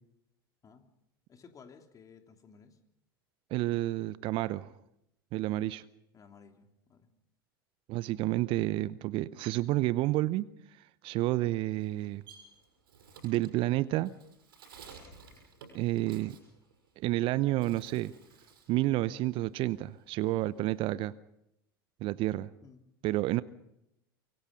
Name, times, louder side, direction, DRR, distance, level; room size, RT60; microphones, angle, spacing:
voice 1, 1.3-2.8 6.1-7.1 22.6-22.8, left 5 dB, 30° left, 5 dB, 3.2 m, -56 dB
voice 2, 3.5-4.7 5.3-5.8 7.9-10.5 10.8-12.2 13.2-14.1 15.7-16.4 17.0-18.1 18.7-21.1 22.0-22.5 23.0-23.4, right 17 dB, 45° right, 18 dB, 0.7 m, -30 dB
Bird, 11.7-17.2 17.5-18.8 19.1-20.9, right 5 dB, 70° right, 6.0 m, -55 dB
24.5 x 23.5 x 5.3 m, 0.82 s
figure-of-eight pair, 85°, 12 cm